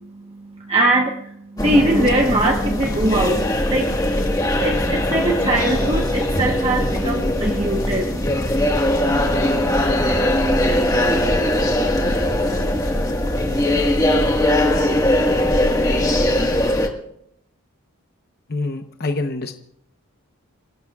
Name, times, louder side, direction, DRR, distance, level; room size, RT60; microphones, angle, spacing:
voice 1, 0.0-4.0 4.6-8.1, right 1 dB, 30° right, 2 dB, 1.1 m, -21 dB
sound 1, 1.6-16.9, left 1 dB, 15° left, 1.5 m, -20 dB
voice 2, 18.5-19.5, left 3 dB, 45° left, 5 dB, 0.9 m, -25 dB
28.0 x 17.5 x 2.4 m, 0.74 s
head